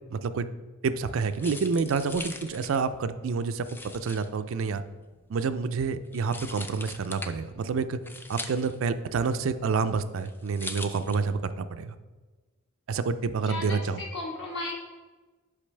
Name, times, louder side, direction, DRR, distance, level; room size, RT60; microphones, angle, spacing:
voice 1, 0.1-0.5 0.8-3.7 3.9-4.8 5.3-8.0 8.3-11.9 12.9-14.0, right 5 dB, 70° right, 11 dB, 0.4 m, -28 dB
sound 1, 0.9-11.6, left 2 dB, 10° left, 0.3 m, -43 dB
voice 2, 13.5-14.7, left 2 dB, 60° left, -1 dB, 1.5 m, -35 dB
8.4 x 5.5 x 3.3 m, 1.3 s
head